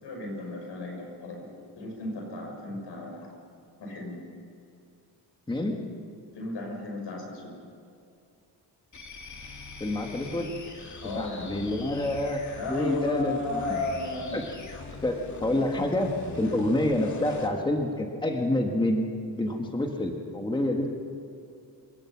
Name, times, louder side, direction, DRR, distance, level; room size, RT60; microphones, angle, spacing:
voice 1, 0.0-3.3 3.8-4.2 6.3-7.5 11.0-11.6 12.6-14.4, left 2 dB, 80° left, 0 dB, 6.4 m, -34 dB
voice 2, 5.5-5.9 9.8-10.5 11.1-12.4 12.7-13.8 14.3-14.4 15.0-19.1 19.3-20.9, left 1 dB, 10° left, 2 dB, 1.5 m, -27 dB
sound 1, 8.9-17.6, left 4 dB, 45° left, 2.5 m, -43 dB
27.5 x 17.0 x 5.9 m, 2.6 s
wide cardioid pair, 150°, 41 cm